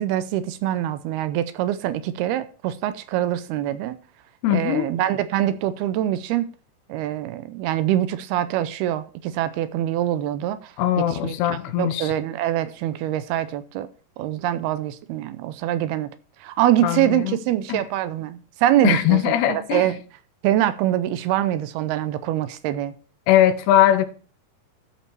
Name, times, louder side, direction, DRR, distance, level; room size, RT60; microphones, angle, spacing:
voice 1, 0.0-4.0 4.5-6.5 6.9-10.7 11.0-11.4 11.8-13.9 14.2-16.1 16.4-20.0 20.4-22.9, right 12 dB, 80° right, 2.5 m, -24 dB
voice 2, 4.4-4.9 10.8-12.1 16.8-17.4 17.7-17.8 18.8-19.9 23.3-24.1, left 12 dB, 85° left, 3.0 m, -20 dB
13.5 x 5.6 x 4.6 m
omnidirectional pair, 4.8 m